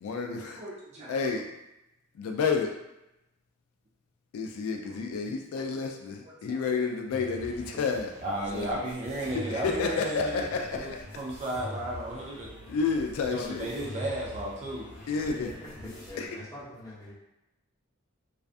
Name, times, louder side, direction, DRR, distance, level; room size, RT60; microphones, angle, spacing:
voice 1, 0.0-0.6 1.1-1.5 2.2-2.7 4.3-8.1 8.5-8.7 9.3-11.0 12.7-13.7 15.1-15.5 16.2-16.3, left 5 dB, 85° left, 6 dB, 0.3 m, -30 dB
voice 2, 0.6-1.1 6.2-6.6 8.2-10.5 10.7-12.5 13.3-14.9, right 1 dB, 30° right, -4 dB, 0.4 m, -34 dB
sound 1, 7.1-16.1, left 1 dB, 50° left, 0.8 m, -44 dB
voice 3, 15.2-17.1, left 1 dB, 15° left, -8 dB, 0.7 m, -44 dB
2.5 x 2.2 x 2.4 m, 0.91 s
head